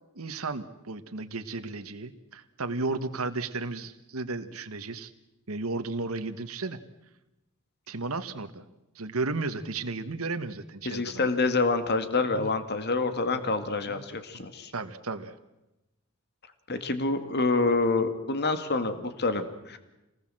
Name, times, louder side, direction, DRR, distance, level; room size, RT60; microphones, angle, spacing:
voice 1, 0.1-5.1 5.5-6.8 7.9-8.6 8.9-11.2 12.3-12.5 13.3-13.4 13.9-14.0 14.7-15.3, right 3 dB, 85° right, 8 dB, 1.4 m, -34 dB
voice 2, 10.9-14.7 16.7-19.8, left 3 dB, 50° left, 10 dB, 2.0 m, -27 dB
27.0 x 19.5 x 7.7 m, 0.96 s
head